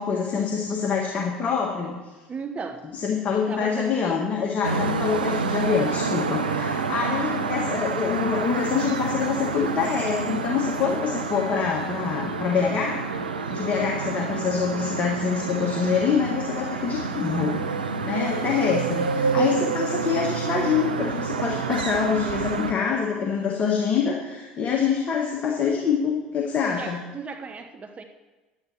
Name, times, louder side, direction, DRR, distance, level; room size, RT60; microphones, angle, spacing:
voice 1, 0.0-2.0 2.9-13.0 13.5-17.5 18.0-27.0, left 6 dB, 35° left, -1 dB, 1.5 m, -25 dB
voice 2, 2.3-2.9 3.3-4.2 19.4-19.7 26.7-28.0, right 5 dB, 30° right, 6 dB, 0.8 m, -36 dB
sound 1, 4.6-22.7, right 5 dB, 85° right, 0.6 m, -28 dB
11.0 x 9.6 x 4.4 m, 1.2 s
figure-of-eight pair, 70°, 5 cm